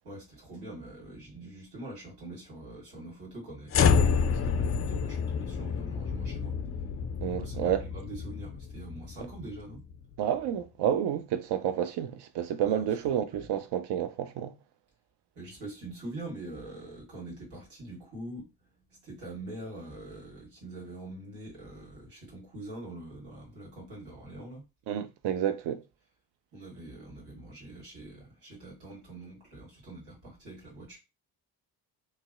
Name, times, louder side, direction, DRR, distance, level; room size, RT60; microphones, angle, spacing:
voice 1, 0.0-6.5 7.4-9.8 12.6-12.8 13.3-13.5 15.3-18.5 18.9-24.6 26.5-31.0, right 2 dB, 75° right, 1.6 m, -44 dB
sound 1, 3.7-10.0, left 6 dB, 30° left, 0.4 m, -29 dB
voice 2, 7.2-7.9 10.2-14.5 24.9-25.8, right 9 dB, 55° right, 0.5 m, -30 dB
2.6 x 2.0 x 2.4 m
hypercardioid pair, 40°, 48 cm